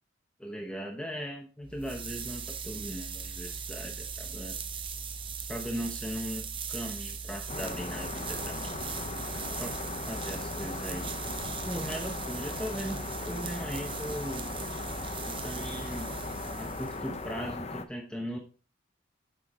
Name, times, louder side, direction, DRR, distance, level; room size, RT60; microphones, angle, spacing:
voice 1, 0.4-4.6 5.5-8.7 9.6-11.1 11.7-14.5 15.2-16.1 16.5-18.4, equal, 5° left, 1 dB, 0.9 m, -38 dB
sound 1, 1.6-17.4, right 5 dB, 25° right, 0.7 m, -39 dB
sound 2, 7.5-17.8, left 3 dB, 35° left, 0.7 m, -38 dB
8.3 x 5.9 x 3.6 m, 0.36 s
head